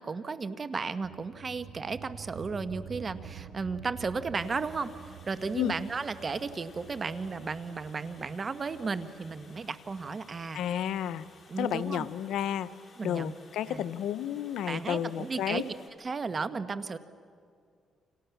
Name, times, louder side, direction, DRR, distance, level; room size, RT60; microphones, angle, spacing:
voice 1, 0.0-4.9 5.2-10.6 11.5-12.1 13.0-13.3 13.7-13.8 14.7-15.6 16.0-17.0, right 4 dB, 35° right, 11 dB, 1.4 m, -34 dB
sound 1, 1.0-12.1, right 7 dB, 65° right, 1.7 m, -48 dB
Water, 4.4-15.9, left 3 dB, 30° left, 4.9 m, -57 dB
voice 2, 10.5-11.3 11.6-12.7 13.0-15.6, left 10 dB, 80° left, 14 dB, 0.8 m, -31 dB
30.0 x 26.5 x 7.2 m, 2.3 s
cardioid pair, 90°, 0 cm